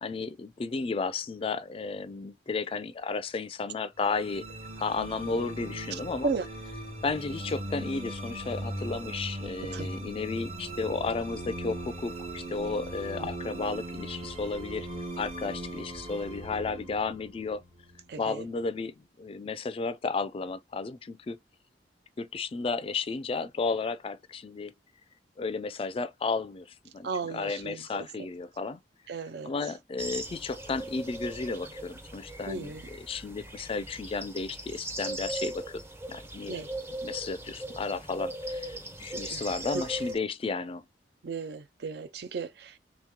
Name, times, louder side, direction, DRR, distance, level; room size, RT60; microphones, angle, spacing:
voice 1, 0.0-4.4 4.8-6.3 7.0-14.9 15.2-17.6 18.2-21.4 22.2-24.7 25.4-26.7 26.9-27.1 27.3-28.8 29.5-32.7 33.1-35.8 36.1-36.6 37.0-40.8, left 4 dB, 30° left, 0.3 m, -33 dB
sound 1, 4.0-18.4, right 1 dB, 35° right, 1.0 m, -39 dB
voice 2, 5.9-6.5 9.7-9.9 13.2-13.3 18.1-18.4 27.0-28.1 29.1-29.7 32.5-32.9 36.5-36.7 39.1-39.5 39.7-39.8 41.2-42.8, right 4 dB, 65° right, 0.4 m, -35 dB
sound 2, 30.0-40.2, right 1 dB, 15° right, 0.6 m, -39 dB
3.1 x 2.9 x 3.6 m
head